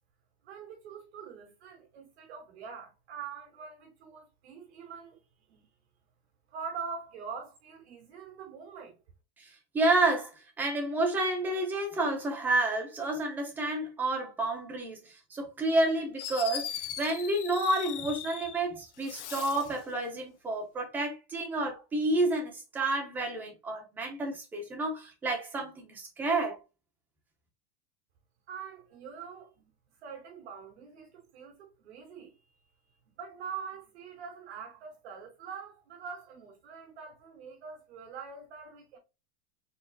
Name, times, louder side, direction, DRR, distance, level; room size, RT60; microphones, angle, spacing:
voice 1, 0.4-5.2 5.5-5.6 6.5-9.0 28.5-29.6 30.0-32.4 33.2-39.0, right 6 dB, 70° right, 2.1 m, -44 dB
voice 2, 9.4-10.3 10.6-26.6, right 2 dB, 5° right, 0.5 m, -30 dB
Fireworks, 15.8-15.9 16.2-18.6 19.0-19.8, left 10 dB, 85° left, 0.9 m, -39 dB
4.6 x 3.7 x 2.2 m
supercardioid pair, 175°, 34 cm